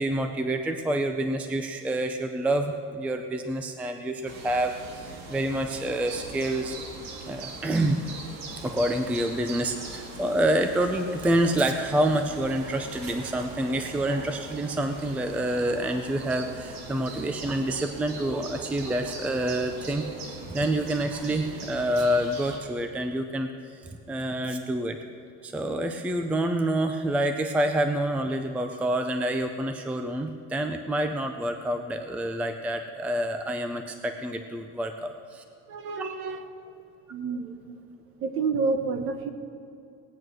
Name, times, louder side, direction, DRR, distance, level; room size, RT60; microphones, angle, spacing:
voice 1, 0.0-6.8 7.3-8.0 8.6-23.8 24.1-25.0 25.4-35.4 36.0-36.2, right 1 dB, 5° right, 7 dB, 0.4 m, -27 dB
sound 1, 4.3-22.6, right 3 dB, 65° right, 2.1 m, -41 dB
voice 2, 35.7-36.5 37.1-37.6 38.2-39.3, right 4 dB, 45° right, 8 dB, 1.2 m, -29 dB
18.0 x 9.3 x 6.2 m, 2.6 s
cardioid pair, 180°, 29 cm